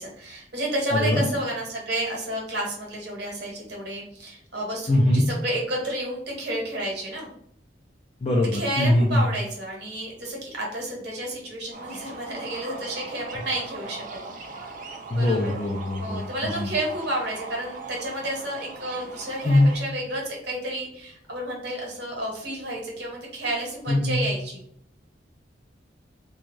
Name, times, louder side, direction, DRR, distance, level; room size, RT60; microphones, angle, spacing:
voice 1, 0.0-7.3 8.5-14.0 15.1-15.6 16.0-24.6, right 1 dB, 60° right, -1 dB, 1.1 m, -31 dB
voice 2, 0.9-1.3 4.9-5.3 8.2-9.2 15.1-16.7 19.4-19.7 23.9-24.3, left 1 dB, 35° left, -2 dB, 0.4 m, -22 dB
sound 1, 11.7-19.8, right 3 dB, 45° right, 0.4 m, -40 dB
2.5 x 2.3 x 3.0 m, 0.67 s
head